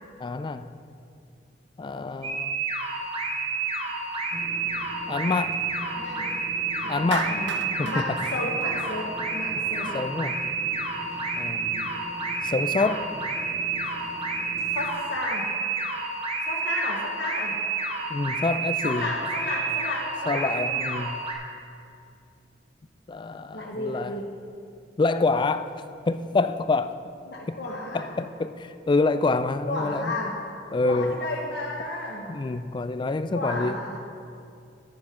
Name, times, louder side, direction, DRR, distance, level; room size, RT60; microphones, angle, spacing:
voice 1, 0.2-0.7 1.8-2.6 5.1-5.6 6.9-7.3 7.8-8.2 9.9-10.4 11.3-12.0 12.4-13.1 18.1-19.1 20.3-21.2 23.1-24.2 25.0-25.7 26.1-27.0 27.5-27.6 27.9-30.1 30.7-31.2 32.3-33.8, left 3 dB, 25° left, 11 dB, 0.3 m, -26 dB
sound 1, 2.2-21.3, right 3 dB, 35° right, 1.2 m, -30 dB
sound 2, 4.3-14.9, equal, 15° right, 0.6 m, -43 dB
voice 2, 6.0-6.3 6.8-10.0 14.7-15.6 16.4-17.6 18.8-20.8 23.5-24.3 27.3-28.1 29.7-30.4 30.8-32.3 33.3-34.0, left 2 dB, 65° left, -3 dB, 1.1 m, -32 dB
Clapping, 7.1-9.4, right 6 dB, 80° right, 0.5 m, -34 dB
10.0 x 8.4 x 4.9 m, 2.5 s
head